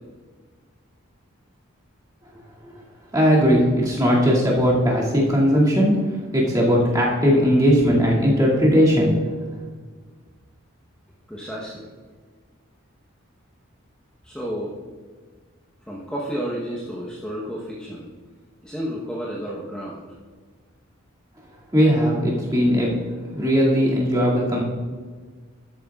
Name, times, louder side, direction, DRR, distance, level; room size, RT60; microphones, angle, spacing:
voice 1, 3.1-5.9 6.3-9.1 21.7-22.9 23.3-24.6, equal, 20° right, -5 dB, 2.2 m, -18 dB
voice 2, 11.3-11.9 14.2-14.7 15.9-18.1 18.6-20.2, equal, 5° left, -5 dB, 0.9 m, -31 dB
12.5 x 9.0 x 2.4 m, 1.5 s
head